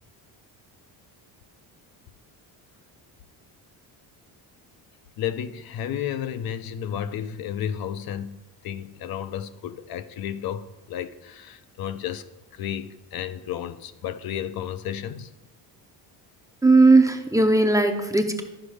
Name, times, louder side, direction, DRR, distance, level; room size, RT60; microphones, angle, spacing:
voice 1, 5.2-8.4 8.6-15.3, left 9 dB, 60° left, 0.6 m, -32 dB
voice 2, 16.6-18.4, right 3 dB, 10° right, 0.5 m, -17 dB
12.5 x 5.2 x 4.9 m
cardioid pair, 125°, 41 cm